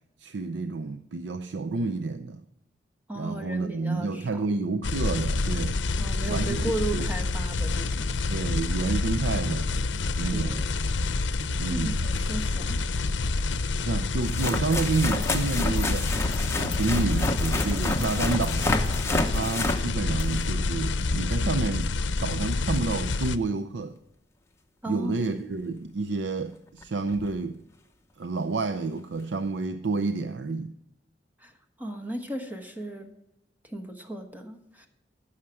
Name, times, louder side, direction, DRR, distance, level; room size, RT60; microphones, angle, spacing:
voice 1, 0.2-2.4 3.1-6.0 6.3-7.1 8.3-9.7 10.2-10.7 11.6-12.0 13.8-16.1 16.5-18.7 19.3-21.9 22.2-24.0 24.9-27.6 28.2-30.8, right 3 dB, 75° right, 0.5 m, -29 dB
voice 2, 3.1-4.4 6.0-8.1 10.3-10.8 11.7-12.8 24.8-25.1 31.4-31.5 31.8-33.1 33.6-34.9, right 1 dB, 10° right, 1.3 m, -35 dB
sound 1, 4.8-23.4, left 3 dB, 85° left, 0.6 m, -28 dB
sound 2, 12.1-12.2 13.4-13.5 14.2-20.6 25.7-25.8 26.8-26.9 27.1-27.3 29.2-29.3, left 2 dB, 15° left, 0.9 m, -29 dB
15.0 x 6.5 x 4.7 m
head